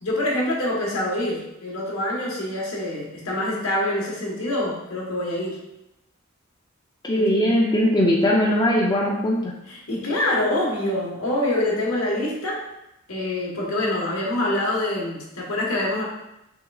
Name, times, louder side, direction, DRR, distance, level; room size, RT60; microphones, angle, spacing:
voice 1, 0.0-5.6 7.1-7.3 9.7-12.6 13.1-16.0, left 1 dB, 80° left, -3 dB, 1.3 m, -25 dB
voice 2, 7.0-9.5, left 1 dB, 20° left, -3 dB, 0.5 m, -20 dB
5.7 x 3.7 x 2.4 m, 0.88 s
head